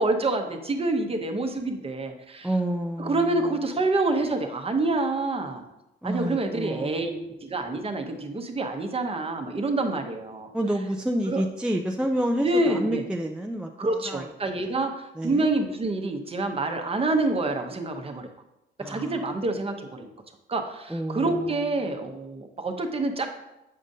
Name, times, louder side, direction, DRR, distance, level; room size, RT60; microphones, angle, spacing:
voice 1, 0.0-2.5 3.0-5.6 6.0-10.5 11.3-11.4 12.4-13.1 13.8-18.3 18.9-20.1 20.5-23.3, right 2 dB, 30° right, 5 dB, 0.8 m, -27 dB
voice 2, 2.4-3.2 6.0-7.1 10.5-14.2 15.2-15.5 18.8-19.1 20.9-21.6, right 1 dB, 5° right, 2 dB, 0.4 m, -29 dB
7.5 x 5.0 x 2.7 m, 0.92 s
cardioid pair, 90°, 20 cm